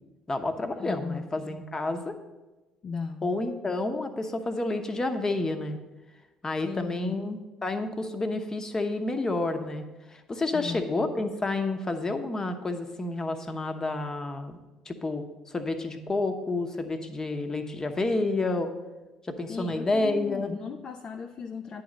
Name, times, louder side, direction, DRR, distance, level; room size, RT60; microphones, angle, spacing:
voice 1, 0.3-2.2 3.2-5.8 6.4-14.6 14.9-18.7 19.2-20.5, left 2 dB, 25° left, 6 dB, 0.9 m, -30 dB
voice 2, 0.8-1.3 2.8-3.3 6.6-7.2 10.5-10.9 19.5-21.8, left 5 dB, 40° left, 6 dB, 0.4 m, -36 dB
10.0 x 3.9 x 6.5 m, 1.1 s
figure-of-eight pair, 55°, 2 cm